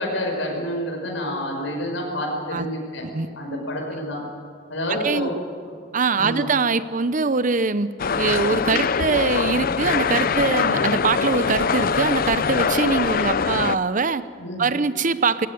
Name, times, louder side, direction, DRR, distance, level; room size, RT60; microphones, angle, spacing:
voice 1, 0.0-3.0 3.4-4.2 4.7-5.3 6.2-6.4 14.4-14.7, left 1 dB, 85° left, 0 dB, 5.6 m, -28 dB
voice 2, 4.9-5.3 5.9-14.3 14.6-15.5, right 4 dB, 45° right, 14 dB, 0.7 m, -23 dB
sound 1, 8.0-13.8, left 5 dB, 50° left, 0.6 m, -23 dB
20.0 x 17.5 x 9.5 m, 2.1 s
head